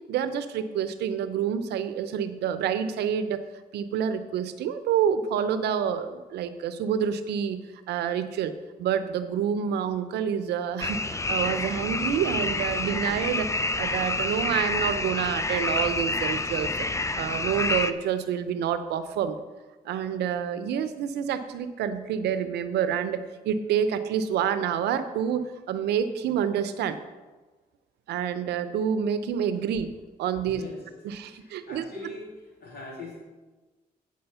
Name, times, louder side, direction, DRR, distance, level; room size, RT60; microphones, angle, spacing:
voice 1, 0.1-3.4 3.7-7.6 7.9-8.5 8.8-16.9 17.2-19.4 19.8-27.0 28.1-29.9 30.2-30.6 31.0-31.8, right 8 dB, 90° right, 11 dB, 0.6 m, -28 dB
sound 1, 10.8-17.9, left 2 dB, 15° left, 0.5 m, -28 dB
voice 2, 30.4-30.8 31.3-32.3 32.6-33.2, left 2 dB, 75° left, -3 dB, 3.1 m, -41 dB
8.9 x 5.1 x 6.8 m, 1.2 s
supercardioid pair, 60°, 17 cm